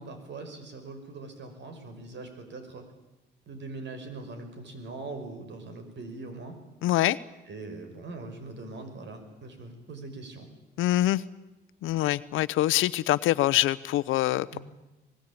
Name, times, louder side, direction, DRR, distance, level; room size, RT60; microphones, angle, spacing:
voice 1, 0.0-2.8 3.5-6.6 7.5-10.5 14.5-14.6, right 3 dB, 65° right, 7 dB, 5.6 m, -41 dB
voice 2, 6.8-7.2 10.8-11.2 11.8-14.5, left 15 dB, 90° left, 16 dB, 0.9 m, -24 dB
24.5 x 20.0 x 8.7 m, 1.0 s
cardioid pair, 90°, 20 cm